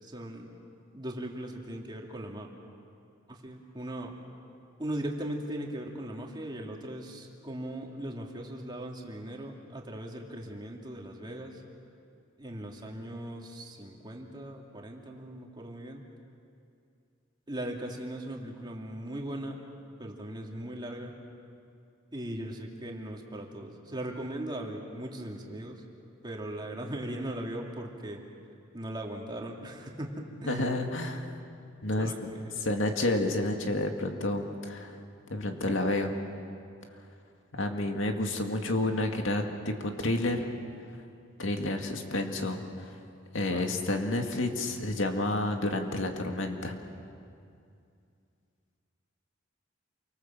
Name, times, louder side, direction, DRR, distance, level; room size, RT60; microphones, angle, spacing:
voice 1, 0.0-0.5 0.9-2.5 3.3-4.2 4.8-11.6 12.4-16.0 17.5-19.7 20.0-21.1 22.1-25.8 26.2-28.2 28.7-30.7 32.0-32.8 43.5-43.7, right 1 dB, 25° right, 0 dB, 2.7 m, -39 dB
voice 2, 30.5-31.3 31.8-32.3 32.6-35.0 35.3-36.1 37.5-40.5 41.4-42.9 43.3-46.7, left 2 dB, 75° left, 4 dB, 2.2 m, -30 dB
28.5 x 24.5 x 7.5 m, 2.4 s
head